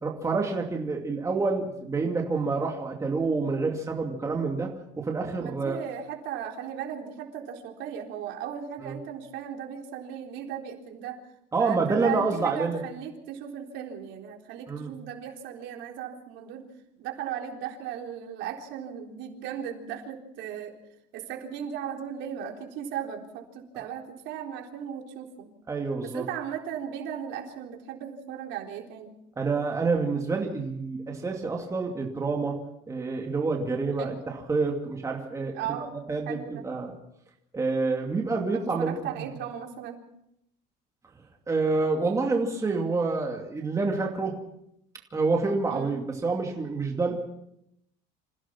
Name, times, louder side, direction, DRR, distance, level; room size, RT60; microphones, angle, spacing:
voice 1, 0.0-5.8 8.8-8.9 11.5-12.8 14.7-14.9 25.7-26.2 29.4-32.6 32.9-35.5 36.1-36.9 37.5-39.0 41.5-44.4 45.1-47.2, right 4 dB, 15° right, 1 dB, 2.6 m, -28 dB
voice 2, 5.4-11.2 11.6-16.6 17.0-20.7 21.1-25.5 26.0-29.2 34.0-34.2 35.5-36.0 36.3-36.6 38.5-40.0 45.7-46.0, right 9 dB, 65° right, 1 dB, 4.0 m, -37 dB
27.0 x 16.5 x 5.9 m, 0.77 s
cardioid pair, 145°, 20 cm